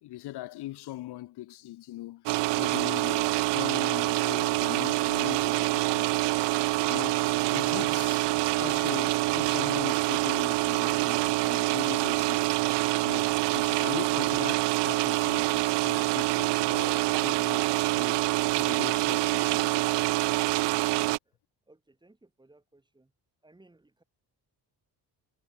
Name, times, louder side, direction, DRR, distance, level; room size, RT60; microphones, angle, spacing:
voice 1, 0.0-2.3 2.6-6.2 6.9-12.5 13.0-17.6 17.9-18.2 18.5-19.8, left 16 dB, 70° left, 0.7 m, -40 dB
sound 1, 2.3-21.2, right 20 dB, 85° right, 0.5 m, -26 dB
sound 2, 4.0-10.7, left 1 dB, 5° left, 4.5 m, -61 dB
voice 2, 20.9-21.4 21.7-23.1 23.4-24.0, right 2 dB, 10° right, 7.6 m, -61 dB
cardioid pair, 150°, 41 cm